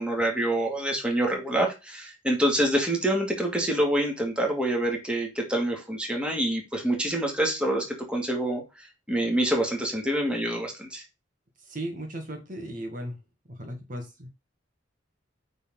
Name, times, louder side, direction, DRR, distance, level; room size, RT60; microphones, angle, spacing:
voice 1, 0.0-8.6 9.1-11.0, right 1 dB, 5° right, 0 dB, 2.3 m, -26 dB
voice 2, 11.6-13.2 13.5-14.3, right 1 dB, 45° right, 4 dB, 1.7 m, -36 dB
9.1 x 4.1 x 3.8 m, 0.26 s
head